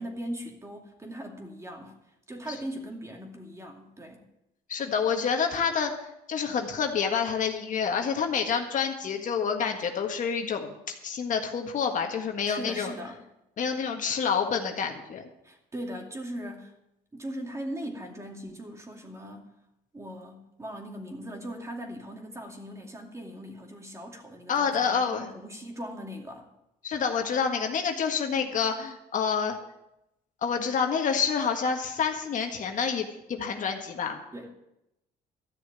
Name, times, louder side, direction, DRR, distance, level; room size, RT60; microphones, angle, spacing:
voice 1, 0.0-2.0 2.3-4.3 12.5-13.2 15.4-16.7 17.1-19.5 19.9-26.5 34.3-34.5, equal, 15° right, 2 dB, 2.5 m, -39 dB
voice 2, 4.7-5.9 6.3-12.9 13.6-15.2 24.5-25.3 26.8-29.6 30.4-34.2, left 6 dB, 50° left, 4 dB, 1.7 m, -28 dB
13.5 x 6.6 x 8.9 m, 0.86 s
cardioid pair, 110°, 17 cm